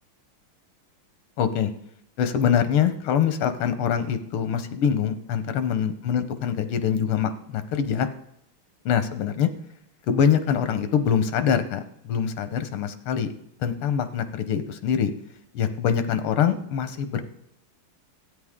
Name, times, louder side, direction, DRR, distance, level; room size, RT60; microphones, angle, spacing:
voice 1, 1.4-1.7 2.2-8.1 8.9-9.5 10.1-13.3 13.6-15.1 15.5-17.2, left 8 dB, 85° left, 10 dB, 1.8 m, -24 dB
13.0 x 9.1 x 3.7 m, 0.74 s
omnidirectional pair, 2.3 m